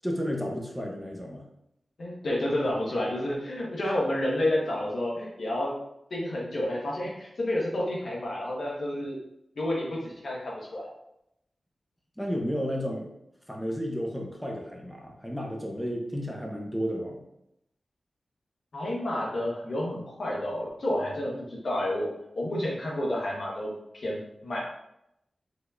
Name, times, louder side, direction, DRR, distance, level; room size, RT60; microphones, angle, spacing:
voice 1, 0.0-1.4 12.2-13.1 13.5-17.2, equal, 5° left, 0 dB, 1.1 m, -32 dB
voice 2, 2.0-5.8 6.1-9.2 9.5-10.9 18.7-24.7, left 1 dB, 70° left, -3 dB, 1.4 m, -30 dB
4.9 x 3.8 x 2.7 m, 0.81 s
cardioid pair, 45°, 0 cm